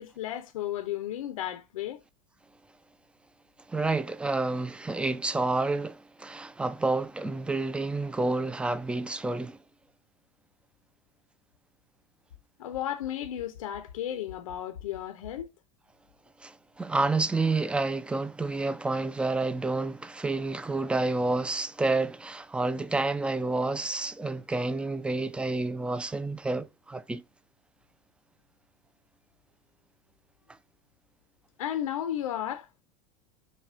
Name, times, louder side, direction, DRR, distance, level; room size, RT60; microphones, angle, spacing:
voice 1, 0.0-2.0 12.6-15.5 31.6-32.7, left 11 dB, 85° left, 0.5 m, -34 dB
voice 2, 3.7-9.6 16.4-27.2, right 3 dB, 5° right, 0.3 m, -29 dB
5.4 x 2.2 x 2.4 m
hypercardioid pair, 95°, 17 cm